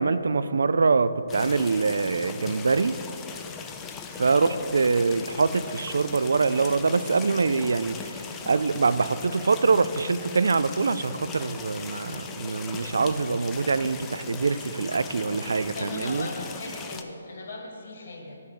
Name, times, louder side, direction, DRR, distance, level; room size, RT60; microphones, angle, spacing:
voice 1, 0.0-2.9 4.2-16.3, right 4 dB, 75° right, 14 dB, 0.3 m, -24 dB
sound 1, 1.3-17.0, left 5 dB, 15° left, 0.4 m, -39 dB
voice 2, 4.3-4.6 15.7-18.4, left 2 dB, 60° left, 1 dB, 1.8 m, -38 dB
10.5 x 3.6 x 6.6 m, 2.7 s
hypercardioid pair, 150°, 0 cm